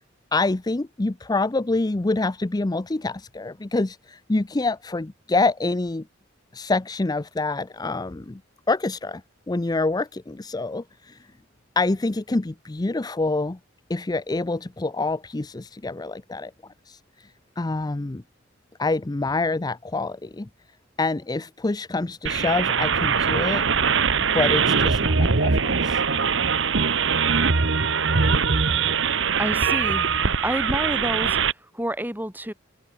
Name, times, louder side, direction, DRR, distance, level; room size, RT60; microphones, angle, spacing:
voice 1, 0.3-6.1 6.5-8.4 8.7-9.2 9.5-11.2 11.8-13.6 13.9-16.5 16.9-17.3 17.6-18.2 18.8-20.5 21.0-23.6 24.3-26.0, left 3 dB, 20° left, 0.5 m, -26 dB
sound 1, 22.3-31.5, right 5 dB, 65° right, 1.3 m, -22 dB
voice 2, 29.4-31.4 31.7-32.5, right 1 dB, 10° right, 6.1 m, -29 dB
open air
head